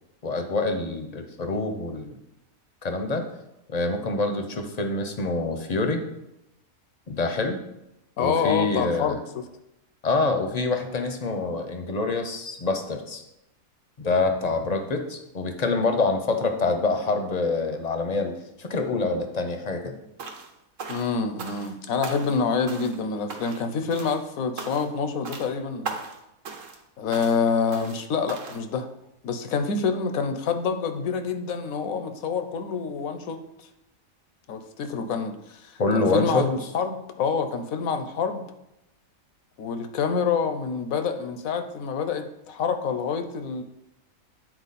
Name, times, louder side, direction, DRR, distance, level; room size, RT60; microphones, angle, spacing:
voice 1, 0.2-2.2 2.8-3.2 3.7-6.0 7.1-7.6 8.2-9.2 10.0-13.2 14.0-19.9 35.8-36.5, left 3 dB, 40° left, 6 dB, 0.7 m, -26 dB
voice 2, 8.2-9.4 20.9-26.0 27.0-28.9 29.2-33.7 34.5-38.4 39.6-43.6, left 5 dB, 80° left, 8 dB, 1.2 m, -27 dB
sound 1, 20.2-20.5 20.8-21.7 22.0-22.4 22.7-23.0 23.3-23.7 23.9-24.2 24.6-25.0 25.2-25.5 25.8-26.2 26.4-26.8 27.1-27.4 27.7-28.0 28.3-28.6, right 4 dB, 65° right, 1.3 m, -37 dB
9.1 x 4.5 x 4.2 m, 0.87 s
omnidirectional pair, 1.4 m